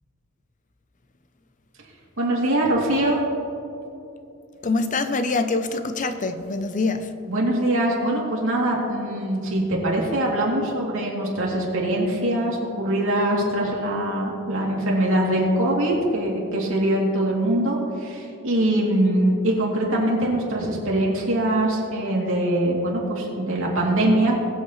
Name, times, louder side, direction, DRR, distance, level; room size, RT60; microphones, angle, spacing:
voice 1, 2.2-3.2 7.3-24.4, right 1 dB, 65° right, -3 dB, 2.7 m, -23 dB
voice 2, 4.6-7.2, left 3 dB, 35° left, 9 dB, 0.6 m, -25 dB
21.5 x 8.1 x 3.1 m, 2.9 s
head